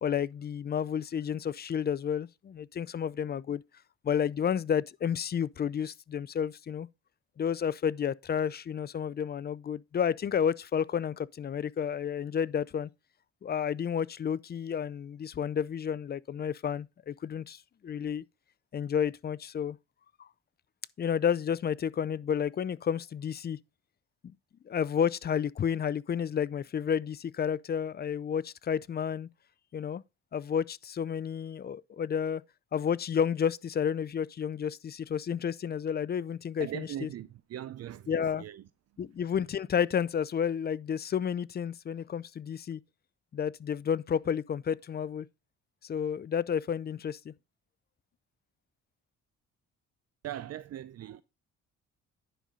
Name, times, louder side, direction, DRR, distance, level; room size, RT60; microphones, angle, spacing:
voice 1, 0.0-3.6 4.0-6.9 7.4-12.9 13.4-18.2 18.7-19.8 20.2-20.3 21.0-23.6 24.2-24.3 24.7-29.3 29.7-30.0 30.3-32.4 32.7-37.1 38.1-38.4 39.0-42.8 43.3-45.3 45.8-47.3, left 8 dB, 35° left, 0.4 m, -31 dB
voice 2, 36.6-38.6 50.2-51.2, right 12 dB, 55° right, 0.6 m, -40 dB
10.0 x 5.6 x 3.7 m
cardioid pair, 90°, 30 cm